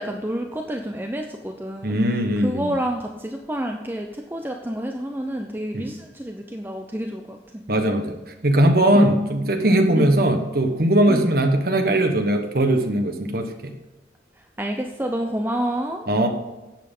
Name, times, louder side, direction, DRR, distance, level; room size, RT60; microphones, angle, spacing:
voice 1, 0.0-2.0 2.4-7.6 8.9-9.1 9.9-10.1 11.1-11.3 14.4-16.1, right 1 dB, 10° right, 3 dB, 0.7 m, -28 dB
voice 2, 1.8-2.7 5.7-5.9 7.7-8.1 8.4-13.5 16.1-16.3, right 1 dB, 55° right, 5 dB, 1.3 m, -19 dB
10.5 x 8.0 x 5.4 m, 1.1 s
head